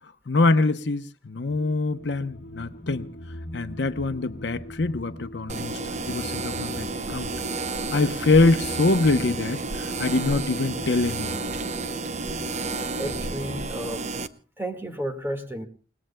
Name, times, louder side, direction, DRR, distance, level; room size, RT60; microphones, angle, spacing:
voice 1, 0.3-3.1 3.5-7.3 7.9-11.4, left 3 dB, 75° left, 0.8 m, -24 dB
sound 1, 1.5-13.6, left 1 dB, 55° left, 1.4 m, -41 dB
sound 2, 5.5-14.3, right 3 dB, 40° right, 0.7 m, -31 dB
voice 2, 13.0-14.2 14.6-15.6, right 1 dB, 15° right, 1.8 m, -32 dB
29.5 x 18.5 x 2.2 m
head